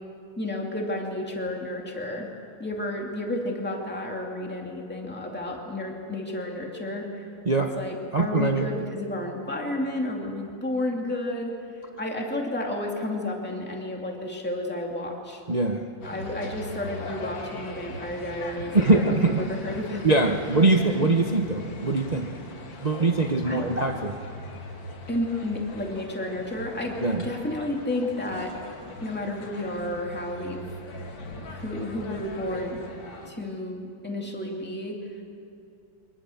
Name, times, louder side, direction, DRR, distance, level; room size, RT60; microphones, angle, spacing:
voice 1, 0.4-2.3 2.6-7.3 7.8-15.4 16.0-20.0 23.4-23.6 25.1-28.5 29.0-30.7 31.5-32.8 33.3-35.0, left 1 dB, 5° left, 0 dB, 2.3 m, -31 dB
voice 2, 8.1-8.7 15.5-15.8 18.7-19.4 20.0-22.4 22.8-24.2 27.0-27.3, right 2 dB, 80° right, 3 dB, 0.3 m, -22 dB
sound 1, 16.0-33.3, left 1 dB, 60° left, 2.6 m, -40 dB
25.0 x 20.5 x 7.2 m, 2.5 s
omnidirectional pair, 2.4 m